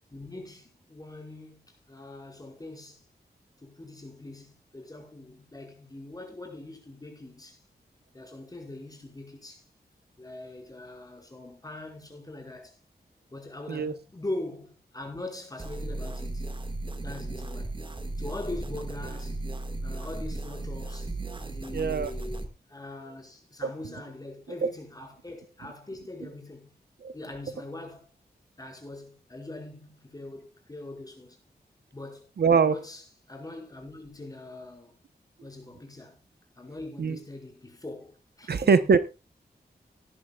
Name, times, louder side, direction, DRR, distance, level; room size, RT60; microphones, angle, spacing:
voice 1, 0.1-3.0 3.6-7.6 8.1-9.7 10.1-12.8 13.3-16.5 17.0-17.8 18.2-19.5 19.8-21.2 21.5-26.7 27.1-28.1 28.6-31.4 31.9-32.3 32.7-35.0 35.4-36.2 36.6-38.9, left 2 dB, 20° left, 5.3 m, -42 dB
sound 1, 15.6-22.5, right 2 dB, 30° right, 1.9 m, -35 dB
voice 2, 21.7-22.1 24.6-24.7 27.0-27.1 32.4-32.7 37.0-37.2 38.5-39.0, right 5 dB, 70° right, 0.9 m, -22 dB
18.5 x 11.0 x 2.4 m
wide cardioid pair, 125°, 17 cm